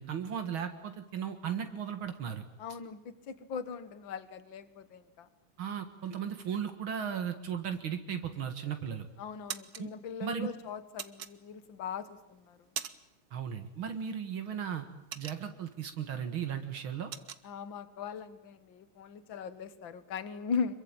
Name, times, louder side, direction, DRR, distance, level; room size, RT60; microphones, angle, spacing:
voice 1, 0.0-2.4 5.6-9.1 9.8-9.9 10.2-10.5 13.3-14.9 15.2-17.1, right 8 dB, 75° right, 7 dB, 2.4 m, -36 dB
voice 2, 2.6-5.3 9.2-12.6 17.4-20.7, left 6 dB, 70° left, 13 dB, 2.2 m, -39 dB
sound 1, 8.4-8.9 9.2-9.8 11.0-11.8 12.3-13.3 13.5-13.8 14.2-15.8 16.2-16.4 16.6-17.4, right 8 dB, 55° right, 1.6 m, -41 dB
26.5 x 23.0 x 8.8 m, 0.83 s
omnidirectional pair, 2.2 m